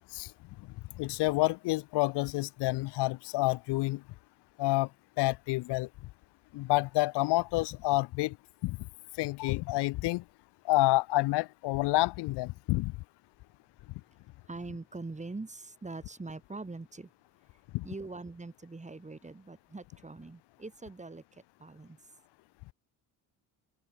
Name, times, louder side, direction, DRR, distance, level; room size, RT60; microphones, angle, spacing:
voice 1, 1.0-4.0 4.6-4.9 5.2-5.9 6.5-8.4 8.6-8.9 9.2-10.2 10.6-13.0 17.7-17.8, left 20 dB, 90° left, 1.0 m, -28 dB
voice 2, 14.5-17.1 17.8-22.0, right 3 dB, 15° right, 7.3 m, -43 dB
cardioid pair, 110°, 40 cm